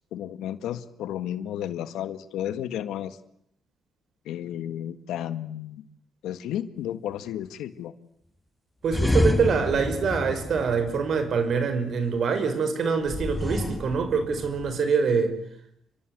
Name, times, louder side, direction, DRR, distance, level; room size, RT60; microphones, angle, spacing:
voice 1, 0.1-3.2 4.2-5.9 6.2-7.9, left 11 dB, 85° left, 12 dB, 1.6 m, -33 dB
voice 2, 8.8-15.3, right 5 dB, 60° right, 9 dB, 5.7 m, -25 dB
sound 1, 8.9-11.5 13.1-14.8, left 1 dB, 10° left, 2.3 m, -28 dB
30.0 x 24.0 x 8.0 m, 0.73 s
cardioid pair, 90°, 0 cm